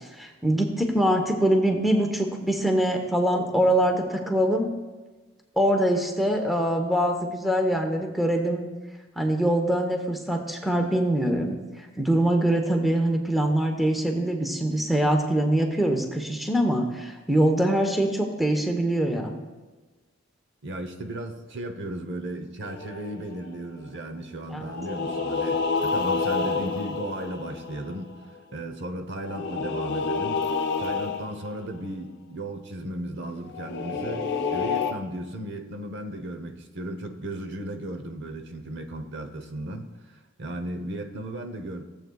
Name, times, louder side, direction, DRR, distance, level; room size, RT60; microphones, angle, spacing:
voice 1, 0.2-4.7 5.6-8.7 9.2-11.6 12.0-19.4 24.5-24.7, right 1 dB, ahead, 2 dB, 1.0 m, -23 dB
voice 2, 20.6-30.5 30.8-41.8, right 1 dB, 60° right, 5 dB, 0.9 m, -35 dB
sound 1, 22.6-23.5 24.6-28.2 29.2-31.6 33.5-34.9, left 4 dB, 60° left, 0.8 m, -29 dB
17.0 x 7.9 x 2.4 m, 1.3 s
head